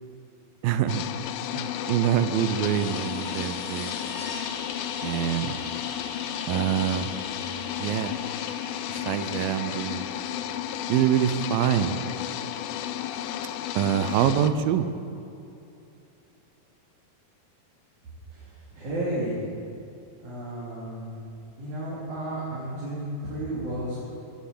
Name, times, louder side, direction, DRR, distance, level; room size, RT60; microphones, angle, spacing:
voice 1, 0.6-1.0 1.5-3.9 5.0-5.6 6.5-7.1 7.8-8.2 8.9-10.1 10.9-12.0 13.8-14.9, right 10 dB, 80° right, 11 dB, 2.4 m, -25 dB
sound 1, 0.9-14.5, left 11 dB, 80° left, 2.4 m, -33 dB
sound 2, 2.3-11.0 13.4-13.5, left 3 dB, 55° left, 3.2 m, -41 dB
voice 2, 18.7-19.4 20.2-21.1 21.6-24.0, right 1 dB, 55° right, -9 dB, 4.7 m, -32 dB
15.5 x 9.8 x 8.6 m, 2.7 s
omnidirectional pair, 4.2 m